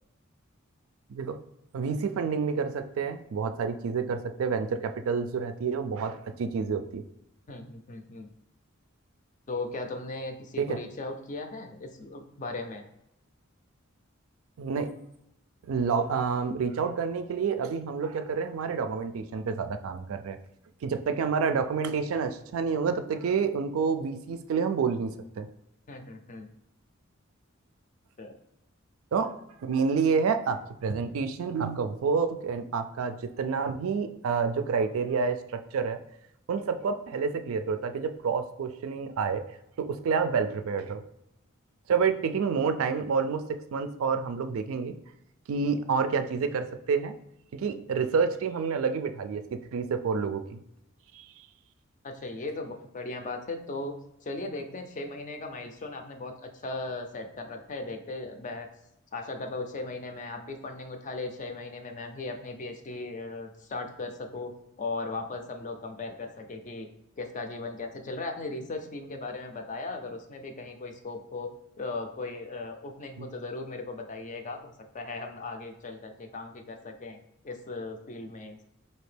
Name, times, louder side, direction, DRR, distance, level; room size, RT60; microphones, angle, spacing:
voice 1, 1.7-7.0 10.6-10.8 14.6-14.9 15.7-20.4 20.8-25.5 29.1-29.3 29.6-36.0 36.5-39.4 39.8-41.0 41.9-43.4 43.7-44.9 45.5-47.1 47.5-49.4 49.7-50.6 51.1-51.5 73.2-73.3, right 5 dB, 75° right, 8 dB, 0.3 m, -28 dB
voice 2, 7.5-8.3 9.5-12.8 25.9-26.5 28.2-28.3 52.0-53.9 54.2-58.7 59.1-64.5 64.8-66.9 67.2-71.5 71.8-77.2 77.4-78.6, left 3 dB, 35° left, 5 dB, 0.4 m, -37 dB
4.2 x 2.8 x 3.3 m, 0.83 s
head